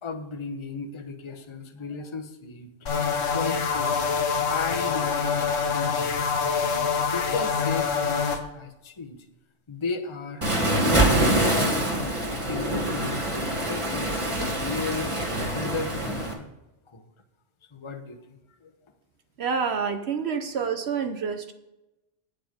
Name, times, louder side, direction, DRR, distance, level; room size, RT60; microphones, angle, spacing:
voice 1, 0.0-2.9 3.3-4.1 4.4-9.3 9.7-12.1 12.4-14.2 14.5-15.1 15.4-16.5 16.9-17.1 17.7-18.8, left 4 dB, 25° left, 3 dB, 0.9 m, -35 dB
sound 1, 2.9-8.4, left 5 dB, 85° left, 1.5 m, -25 dB
Waves surf, 10.4-16.3, right 1 dB, 25° right, 1.5 m, -25 dB
voice 2, 19.4-21.5, right 6 dB, 60° right, 7 dB, 1.0 m, -28 dB
9.0 x 7.8 x 5.2 m, 0.96 s
omnidirectional pair, 1.3 m